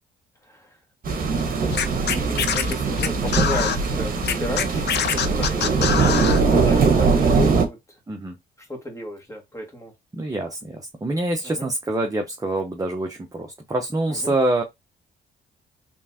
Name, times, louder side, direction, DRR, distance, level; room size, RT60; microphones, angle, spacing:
voice 1, 0.4-0.8 2.0-8.0 8.6-9.9 11.4-11.7 14.1-14.3, equal, 15° left, 2.1 m, -34 dB
sound 1, 1.0-7.7, right 4 dB, 45° right, 1.6 m, -21 dB
Scratching (performance technique), 1.7-3.8 4.2-6.4, left 8 dB, 60° left, 0.7 m, -24 dB
voice 2, 5.8-6.1 8.1-8.3 10.1-14.6, right 2 dB, 15° right, 0.9 m, -26 dB
4.4 x 3.4 x 2.9 m
cardioid pair, 90°, 20 cm